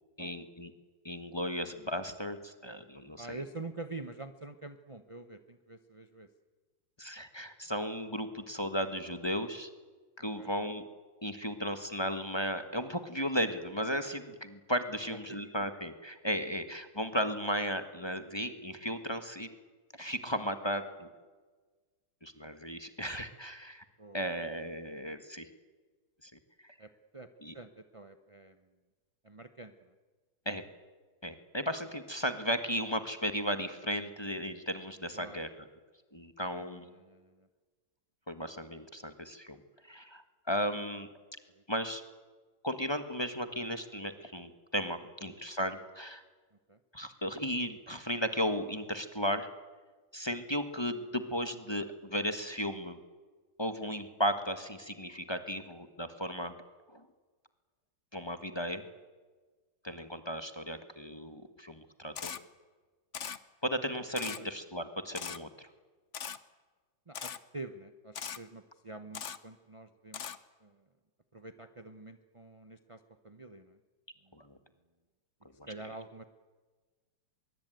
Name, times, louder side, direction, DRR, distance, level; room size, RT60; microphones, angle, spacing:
voice 1, 0.2-0.7 1.0-3.4 7.0-9.7 10.2-10.8 11.2-19.5 19.9-21.1 22.2-23.8 24.1-25.5 26.2-26.3 26.6-26.8 27.4-27.5 30.4-30.6 31.2-35.7 36.1-36.9 38.3-39.6 39.8-41.1 41.7-42.0 42.6-46.2 46.9-49.5 50.1-53.0 53.6-56.5 56.9-57.1 58.1-58.8 59.8-62.3 63.6-65.7 74.3-74.6 75.6-75.7, equal, 15° left, 8 dB, 1.3 m, -35 dB
voice 2, 3.2-6.3 10.4-10.5 15.1-15.4 24.0-24.3 26.8-27.3 27.5-28.6 29.2-29.9 35.1-35.4 36.6-37.5 41.5-41.6 46.7-46.8 64.4-64.5 67.1-70.8 71.3-73.8 74.2-74.3 75.7-76.2, right 2 dB, 25° right, 8 dB, 0.7 m, -47 dB
Camera, 62.1-62.4 63.1-63.4 64.1-64.4 65.1-65.4 66.1-66.4 67.1-67.4 68.1-68.4 69.1-69.4 70.1-70.4, left 8 dB, 50° left, 0.9 m, -39 dB
24.0 x 22.5 x 9.3 m, 1.4 s
omnidirectional pair, 2.4 m